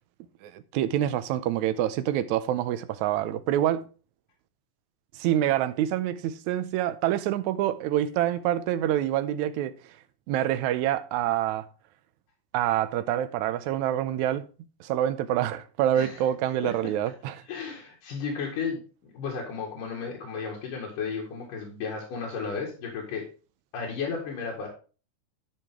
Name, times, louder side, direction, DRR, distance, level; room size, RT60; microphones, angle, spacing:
voice 1, 0.4-3.8 5.2-9.7 10.3-11.7 12.5-14.4 14.8-17.3, right 12 dB, 75° right, 1.9 m, -26 dB
voice 2, 17.5-23.2 23.7-24.7, left 5 dB, 90° left, 3.5 m, -34 dB
12.0 x 5.5 x 3.6 m
omnidirectional pair, 3.6 m